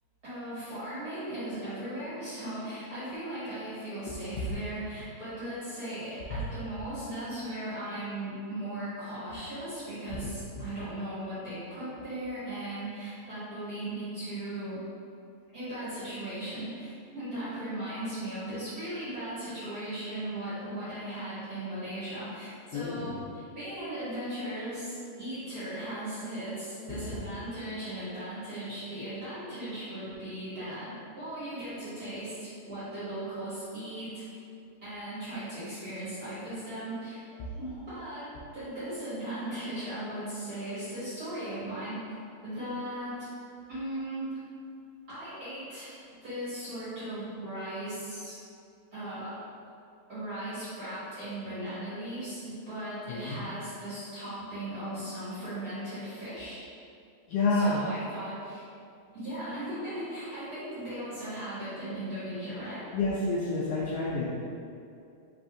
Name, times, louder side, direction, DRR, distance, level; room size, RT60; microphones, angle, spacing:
voice 1, 0.2-14.8 15.5-34.2 34.8-37.2 37.6-42.0 42.4-43.3 43.7-44.4 45.1-45.9 46.2-48.3 48.9-49.3 50.1-56.6 57.5-58.6 59.1-62.8, right 1 dB, 35° right, -14 dB, 1.7 m, -37 dB
voice 2, 4.0-4.4 6.3-6.4 10.2-10.6 22.7-23.2 26.9-27.0 37.4-37.5 53.1-53.5 57.3-57.8 62.9-64.3, left 3 dB, 90° left, -7 dB, 1.3 m, -30 dB
4.9 x 3.4 x 2.6 m, 2.5 s
omnidirectional pair, 3.4 m